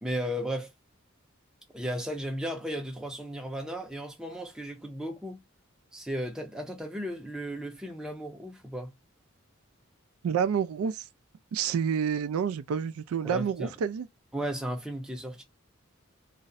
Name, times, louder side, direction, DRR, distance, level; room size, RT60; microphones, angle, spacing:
voice 1, 0.0-0.7 1.7-5.4 5.9-8.9 13.2-13.7 14.3-15.4, equal, 5° right, 0.5 m, -35 dB
voice 2, 10.2-11.0 11.5-14.1, right 7 dB, 85° right, 0.3 m, -28 dB
2.3 x 2.0 x 2.6 m
head